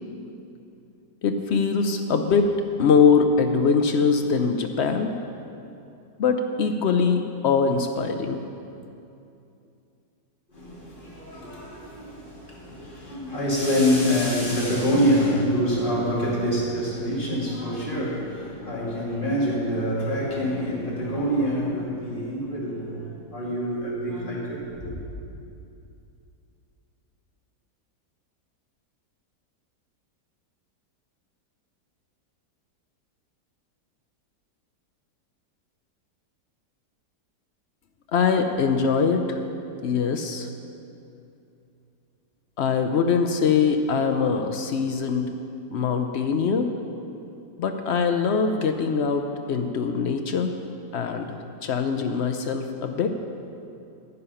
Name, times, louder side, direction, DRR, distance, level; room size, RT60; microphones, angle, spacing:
voice 1, 1.2-5.1 6.2-8.4 38.1-39.4 39.8-40.5 42.6-45.3 45.7-46.7 47.6-50.5 50.9-53.1, left 5 dB, 80° left, 6 dB, 0.6 m, -22 dB
voice 2, 10.5-25.0, equal, 30° left, -6 dB, 2.7 m, -26 dB
11.0 x 9.6 x 5.6 m, 2.7 s
omnidirectional pair, 1.9 m